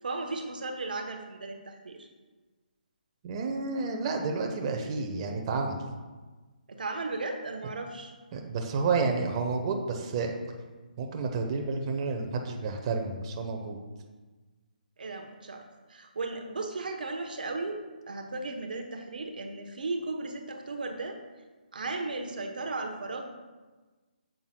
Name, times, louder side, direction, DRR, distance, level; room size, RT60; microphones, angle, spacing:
voice 1, 0.0-2.1 6.7-8.1 15.0-15.6 15.9-17.8 18.1-21.2 21.7-23.3, right 3 dB, 65° right, 4 dB, 1.0 m, -35 dB
voice 2, 3.2-5.8 8.3-10.3 11.0-13.8, right 4 dB, 35° right, 3 dB, 0.8 m, -30 dB
9.1 x 7.5 x 2.3 m, 1.3 s
figure-of-eight pair, 145°, 5 cm